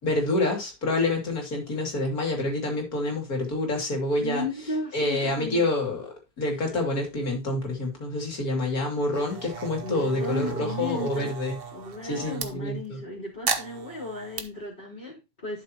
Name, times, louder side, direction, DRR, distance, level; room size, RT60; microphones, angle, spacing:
voice 1, 0.0-4.4 4.9-6.0 6.4-11.6 12.1-13.0, left 2 dB, 80° left, 3.2 m, -27 dB
voice 2, 4.2-5.6 9.8-11.3 11.7-15.6, left 2 dB, 30° left, 3.8 m, -35 dB
sound 1, 9.1-12.5 13.5-14.4, right 6 dB, 45° right, 1.1 m, -35 dB
11.5 x 6.3 x 2.9 m
omnidirectional pair, 1.5 m